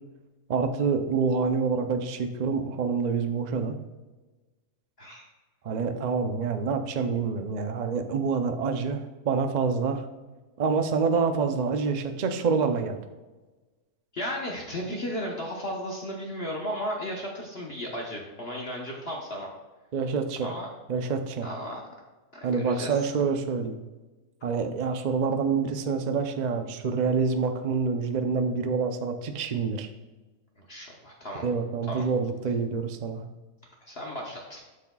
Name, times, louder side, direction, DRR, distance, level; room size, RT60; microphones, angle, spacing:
voice 1, 0.5-3.7 5.6-10.1 10.6-13.0 19.9-20.5 20.9-21.5 22.4-23.8 24.4-29.9 31.4-33.3, right 5 dB, 70° right, 6 dB, 0.4 m, -27 dB
voice 2, 14.1-19.5 20.4-20.7 21.4-21.8 22.4-23.1 30.6-31.4 31.9-32.0 33.8-34.6, equal, 45° left, -2 dB, 1.2 m, -35 dB
12.0 x 6.6 x 2.3 m, 1.2 s
omnidirectional pair, 1.7 m